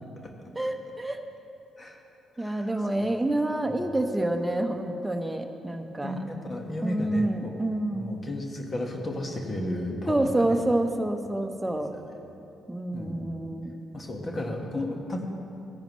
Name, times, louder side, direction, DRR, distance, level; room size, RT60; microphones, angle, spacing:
voice 1, 0.5-1.2 2.4-6.1 6.8-8.3 10.1-11.9 12.7-13.8, right 1 dB, 10° right, 5 dB, 1.0 m, -28 dB
voice 2, 6.0-7.7 7.9-10.5 12.0-12.1 12.9-13.3 13.9-15.3, left 1 dB, 40° left, 2 dB, 1.6 m, -33 dB
16.0 x 10.5 x 3.2 m, 2.8 s
hypercardioid pair, 50°, 0 cm